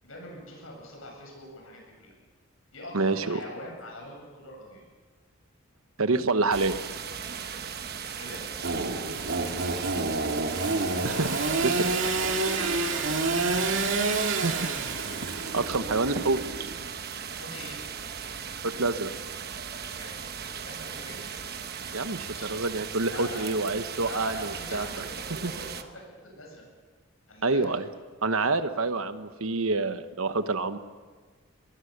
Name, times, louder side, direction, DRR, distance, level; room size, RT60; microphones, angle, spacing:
voice 1, 0.0-2.1 2.7-4.8 8.2-8.4 11.1-13.5 17.3-17.8 19.9-20.2 20.6-21.2 22.3-22.6 23.0-23.6 24.0-26.6 27.3-27.7, left 1 dB, 75° left, 1 dB, 7.8 m, -43 dB
voice 2, 2.9-3.4 6.0-6.8 11.0-11.3 11.6-11.9 14.3-14.6 15.2-16.4 18.6-19.1 21.9-25.0 25.4-25.5 27.4-27.9 28.2-30.8, right 3 dB, 85° right, 10 dB, 1.2 m, -27 dB
sound 1, 6.5-25.8, right 7 dB, 50° right, 1.2 m, -37 dB
Engine / Sawing, 8.6-16.9, right 3 dB, 65° right, 2.3 m, -28 dB
23.5 x 20.0 x 6.7 m, 1.4 s
head